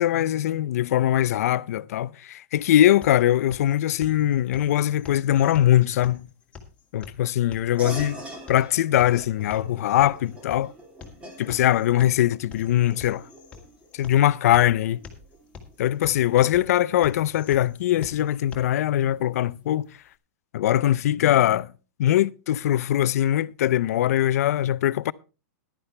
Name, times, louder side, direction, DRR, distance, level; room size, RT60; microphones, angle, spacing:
voice 1, 0.0-6.3 6.9-8.2 8.5-10.7 11.4-13.2 13.9-15.0 15.8-19.9 20.5-21.7 22.0-25.1, left 12 dB, 65° left, 0.5 m, -21 dB
sound 1, 2.6-18.6, left 5 dB, 15° left, 2.1 m, -47 dB
sound 2, 7.8-17.7, right 1 dB, 15° right, 2.5 m, -44 dB
14.5 x 11.5 x 3.3 m
supercardioid pair, 150°, 9 cm